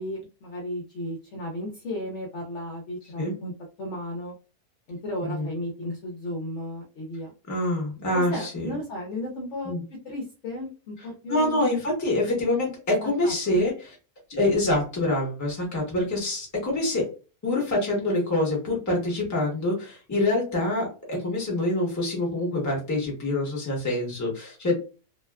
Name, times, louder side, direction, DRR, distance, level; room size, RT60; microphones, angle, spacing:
voice 1, 0.0-3.5 3.8-4.3 4.9-7.3 8.1-9.8 10.0-11.7 13.2-13.6, left 1 dB, 60° left, -2 dB, 0.8 m, -34 dB
voice 2, 7.5-8.7 9.6-9.8 11.3-14.0 14.3-17.1 17.4-24.8, left 2 dB, 15° left, -1 dB, 0.7 m, -26 dB
2.7 x 2.2 x 2.2 m, 0.33 s
omnidirectional pair, 1.7 m